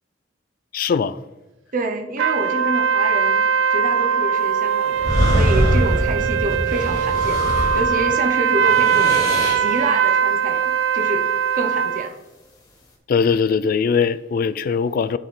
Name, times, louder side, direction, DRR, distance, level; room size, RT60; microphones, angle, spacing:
voice 1, 0.7-1.2 13.1-15.2, left 6 dB, 50° left, 0.3 m, -20 dB
voice 2, 1.7-7.4 7.7-9.2 9.6-11.2 11.5-12.2, right 2 dB, 45° right, 0.7 m, -27 dB
sound 1, 2.2-12.1, right 7 dB, 80° right, 0.4 m, -20 dB
sound 2, 5.0-8.1 8.5-9.7, equal, 20° left, 1.4 m, -22 dB
10.5 x 4.1 x 3.7 m
head